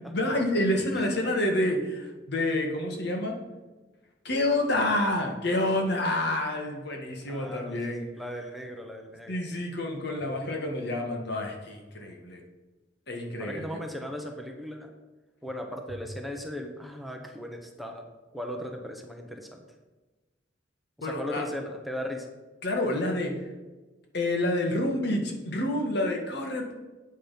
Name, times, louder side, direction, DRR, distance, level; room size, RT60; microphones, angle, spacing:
voice 1, 0.0-3.4 4.2-8.1 9.3-12.4 13.1-13.8 21.0-21.5 22.6-23.4 24.1-26.7, left 1 dB, 60° left, 2 dB, 1.9 m, -28 dB
voice 2, 0.9-1.2 1.7-2.0 7.3-9.4 13.4-14.9 15.4-18.0 18.3-19.6 21.0-22.3, left 1 dB, ahead, 2 dB, 1.0 m, -37 dB
8.9 x 8.6 x 5.8 m, 1.2 s
head